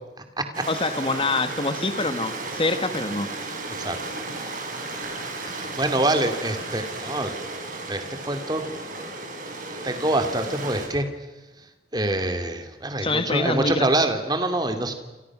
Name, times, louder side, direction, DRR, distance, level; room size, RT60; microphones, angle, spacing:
Stream, 0.5-10.9, right 2 dB, 45° right, 6.3 m, -34 dB
voice 1, 0.7-3.3 13.0-13.8, left 3 dB, 30° left, 10 dB, 1.6 m, -25 dB
voice 2, 5.5-7.3 7.9-8.6 9.8-11.1 11.9-14.9, right 1 dB, 20° right, 7 dB, 2.8 m, -25 dB
28.5 x 27.5 x 6.2 m, 1.1 s
head